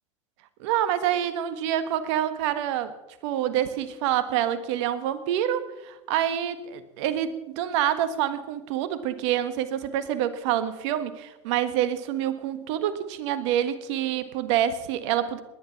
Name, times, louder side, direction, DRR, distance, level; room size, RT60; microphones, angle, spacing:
voice 1, 0.6-2.9 3.2-15.4, right 11 dB, 70° right, 12 dB, 1.6 m, -27 dB
19.5 x 10.5 x 5.9 m, 1.0 s
hypercardioid pair, 85°, 16 cm